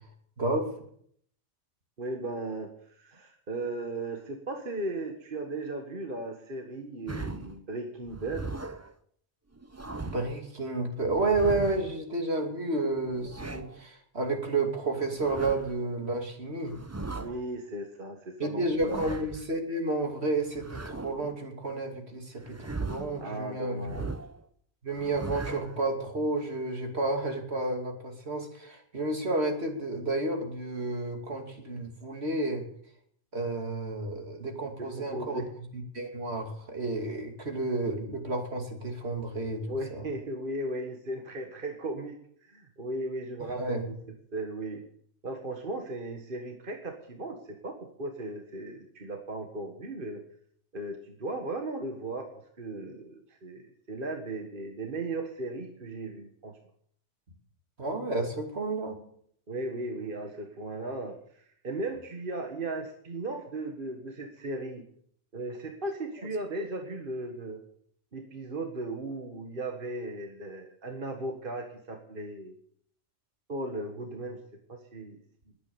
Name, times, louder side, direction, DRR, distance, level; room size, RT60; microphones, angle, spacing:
voice 1, 0.4-0.7 10.0-16.7 18.4-23.9 24.8-32.6 33.3-35.4 35.7-40.0 43.4-43.9 57.8-59.0, right 2 dB, 65° right, 3 dB, 2.9 m, -31 dB
voice 2, 2.0-8.5 17.1-19.0 23.2-24.2 34.8-35.5 39.7-43.9 44.3-44.8 45.2-50.2 50.7-56.6 59.5-64.9 65.3-67.6 68.1-72.5 73.5-74.4 74.7-75.2, right 2 dB, 50° right, 3 dB, 1.8 m, -36 dB
sound 1, 7.1-7.6 8.1-8.9 9.5-10.4 11.1-12.0 13.0-13.8 15.0-15.8 16.7-17.4 18.6-19.5 20.5-21.4 22.4-23.3 23.8-24.4 24.9-25.8, right 3 dB, 15° right, 0.7 m, -39 dB
21.0 x 8.9 x 7.0 m, 0.64 s
omnidirectional pair, 1.2 m